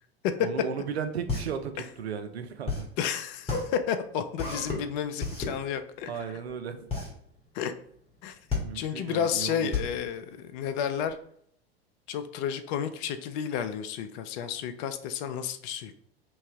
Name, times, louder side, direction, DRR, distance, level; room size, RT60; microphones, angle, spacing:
voice 1, 0.4-2.9 6.1-6.9 8.6-9.7, right 7 dB, 85° right, 8 dB, 0.6 m, -35 dB
sound 1, 0.9-11.1, left 4 dB, 20° left, 1.2 m, -34 dB
voice 2, 3.0-6.1 7.5-7.7 8.2-8.4 8.7-11.2 12.1-15.9, left 8 dB, 50° left, 9 dB, 0.4 m, -31 dB
3.1 x 2.7 x 3.5 m, 0.67 s
hypercardioid pair, 85°, 31 cm